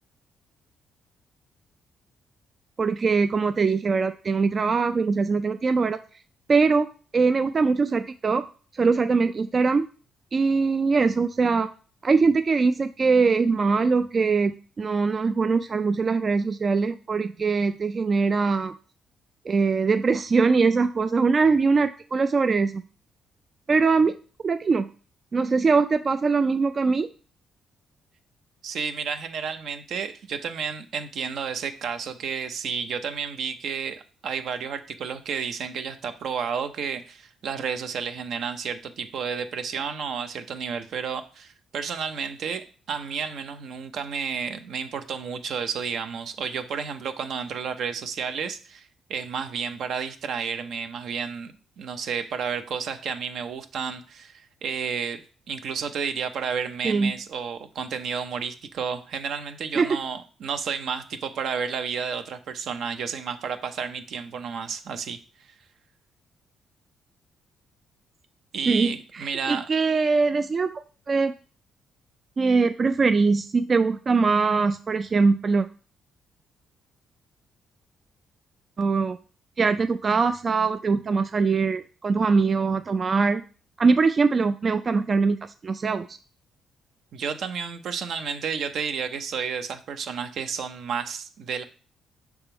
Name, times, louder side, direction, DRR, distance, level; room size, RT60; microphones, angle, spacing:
voice 1, 2.8-6.0 6.5-6.9 7.1-8.4 8.8-9.9 10.3-11.7 12.0-18.7 19.5-22.8 23.7-24.1 24.4-24.9 25.3-27.1 56.8-57.1 59.8-60.0 68.7-70.8 71.1-71.3 72.4-75.7 78.8-79.2 79.6-83.4 83.8-85.4 85.6-86.2, right 4 dB, 40° right, 9 dB, 0.3 m, -22 dB
voice 2, 28.6-65.2 68.5-69.7 87.1-91.6, right 6 dB, 70° right, 8 dB, 0.7 m, -31 dB
5.9 x 3.6 x 4.4 m, 0.38 s
cardioid pair, 90°, 0 cm